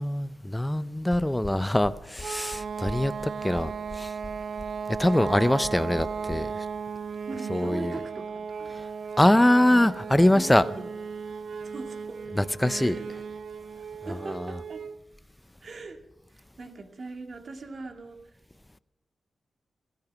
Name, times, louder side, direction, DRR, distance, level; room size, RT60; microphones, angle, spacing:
voice 1, 0.0-4.1 4.9-6.7 7.5-8.0 8.7-8.8 9.2-10.7 12.3-13.0 14.2-14.5, left 1 dB, 10° left, 0.5 m, -23 dB
sound 1, 1.1-6.4, left 2 dB, 35° left, 1.4 m, -41 dB
sound 2, 2.2-15.0, right 6 dB, 70° right, 0.5 m, -36 dB
voice 2, 7.3-8.7 9.6-9.9 10.2-10.9 11.6-12.2 12.7-13.1 14.1-14.8 15.6-16.0 16.3-18.4, right 3 dB, 55° right, 2.1 m, -40 dB
15.5 x 13.5 x 6.1 m
cardioid pair, 90°, 0 cm